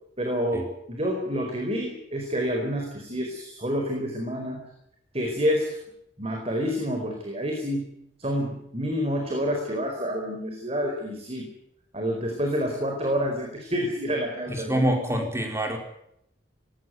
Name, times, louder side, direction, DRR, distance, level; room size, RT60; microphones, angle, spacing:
voice 1, 0.2-4.6 5.1-5.8 6.2-7.9 8.2-11.5 11.9-14.8, equal, 30° right, 2 dB, 4.6 m, -28 dB
voice 2, 14.5-15.8, right 1 dB, 15° right, 3 dB, 4.6 m, -26 dB
19.0 x 18.0 x 9.5 m, 0.75 s
head